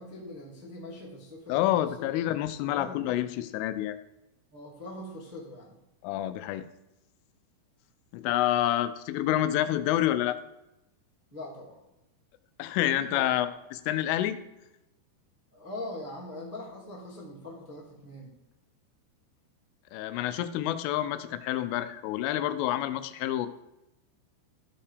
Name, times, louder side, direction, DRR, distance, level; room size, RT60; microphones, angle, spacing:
voice 1, 0.0-2.3 2.6-3.0 4.5-5.8 11.3-11.8 12.8-13.3 15.5-18.3, left 1 dB, 15° right, -4 dB, 0.6 m, -42 dB
voice 2, 1.5-4.0 6.0-6.7 8.1-10.4 12.6-14.4 19.9-23.5, left 13 dB, 90° left, 12 dB, 3.3 m, -28 dB
15.0 x 5.8 x 5.0 m, 0.92 s
omnidirectional pair, 5.6 m